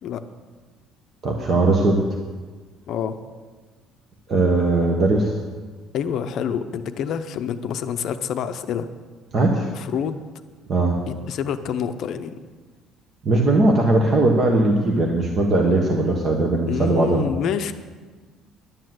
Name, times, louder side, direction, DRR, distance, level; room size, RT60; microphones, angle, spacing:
voice 1, 1.2-2.1 4.3-5.3 9.3-9.7 10.7-11.1 13.2-17.2, right 2 dB, 30° right, 1 dB, 1.1 m, -19 dB
voice 2, 5.9-8.9 9.8-10.2 11.3-12.4 16.7-17.7, left 8 dB, 45° left, 9 dB, 0.7 m, -27 dB
11.0 x 10.0 x 7.7 m, 1.4 s
cardioid pair, 175°, 0 cm